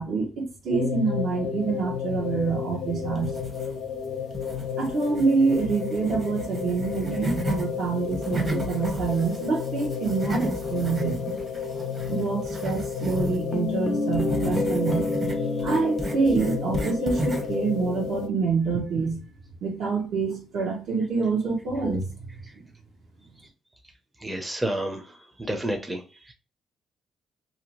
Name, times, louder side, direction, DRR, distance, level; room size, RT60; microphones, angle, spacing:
voice 1, 0.0-3.4 4.8-11.4 12.1-15.1 15.6-19.2 19.6-22.0, right 4 dB, 70° right, 1.0 m, -26 dB
sound 1, 0.7-18.3, left 7 dB, 80° left, 0.6 m, -32 dB
sound 2, 3.2-4.0 4.3-7.7 8.0-13.4 14.1-17.6, right 1 dB, 35° right, 0.9 m, -33 dB
Guitar, 13.2-18.3, left 2 dB, 40° left, 0.4 m, -30 dB
voice 2, 24.2-25.0 25.4-26.0, right 1 dB, 10° right, 0.5 m, -29 dB
2.7 x 2.2 x 2.9 m
cardioid pair, 90°, 0 cm